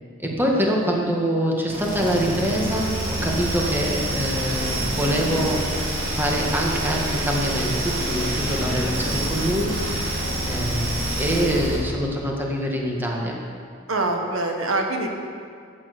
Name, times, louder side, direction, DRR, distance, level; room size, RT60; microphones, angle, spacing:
voice 1, 0.2-13.4, equal, 10° right, -2 dB, 1.8 m, -25 dB
sound 1, 1.7-11.9, right 1 dB, 60° right, 4.2 m, -27 dB
voice 2, 13.9-15.1, right 2 dB, 80° right, 2 dB, 1.5 m, -24 dB
13.5 x 9.1 x 6.8 m, 2.2 s
head